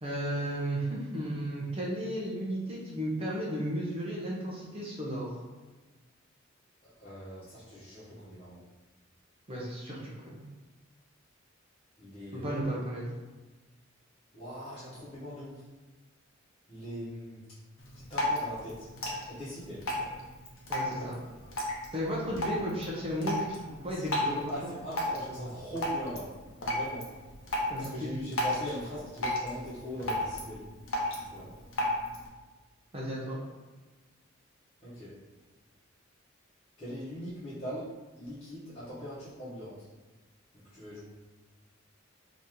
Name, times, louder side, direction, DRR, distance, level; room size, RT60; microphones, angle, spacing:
voice 1, 0.0-5.4 9.5-10.4 12.3-13.0 20.7-21.1 21.9-24.7 27.7-28.1 32.9-33.4, equal, 30° right, -4 dB, 0.6 m, -34 dB
voice 2, 6.8-8.6 12.0-12.5 14.3-15.6 16.7-17.4 17.9-18.9 19.3-19.9 21.4-21.5 23.9-26.3 26.6-27.1 27.6-30.7 31.1-31.5 34.8-35.2 36.8-39.9 40.5-41.0, equal, 30° left, -11 dB, 1.0 m, -41 dB
Drip, 17.8-32.3, left 1 dB, 90° left, 0.8 m, -35 dB
3.0 x 2.7 x 3.6 m, 1.2 s
head